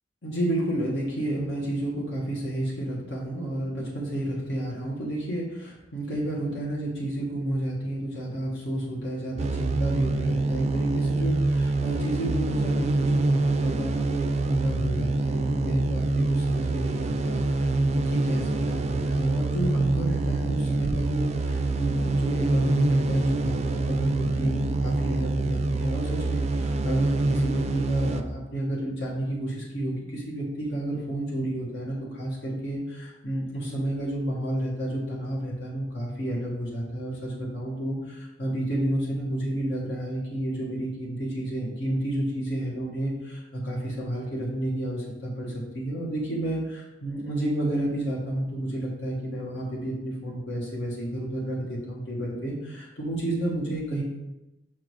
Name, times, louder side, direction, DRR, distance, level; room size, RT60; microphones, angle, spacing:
voice 1, 0.2-54.0, right 1 dB, 75° left, -5 dB, 1.5 m, -30 dB
sound 1, 9.4-28.2, right 2 dB, 35° right, 0.4 m, -25 dB
6.0 x 3.7 x 4.7 m, 0.95 s
head